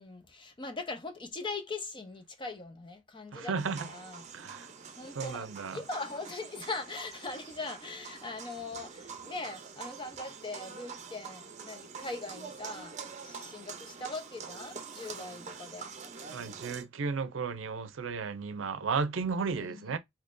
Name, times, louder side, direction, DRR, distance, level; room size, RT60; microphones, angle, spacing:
voice 1, 0.0-4.3 4.9-15.9 19.4-20.0, left 3 dB, 25° left, 0.7 m, -41 dB
voice 2, 3.3-3.9 4.3-4.7 5.2-5.8 16.3-20.0, right 5 dB, 85° right, 0.5 m, -34 dB
sound 1, 3.6-16.8, right 5 dB, 40° right, 0.6 m, -45 dB
3.6 x 2.9 x 2.5 m
head